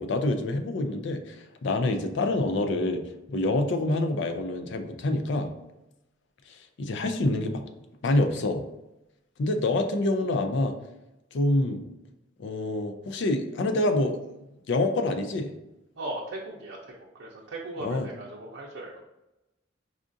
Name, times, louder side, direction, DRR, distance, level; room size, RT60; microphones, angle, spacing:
voice 1, 0.0-3.0 3.3-5.5 6.5-7.6 8.0-8.6 9.4-10.7 11.3-11.8 12.4-14.2 14.7-15.5 17.8-18.1, left 2 dB, 65° left, 7 dB, 0.4 m, -26 dB
voice 2, 16.0-16.9 17.2-19.0, right 2 dB, 90° right, -3 dB, 0.6 m, -37 dB
4.8 x 2.4 x 2.5 m, 0.94 s
head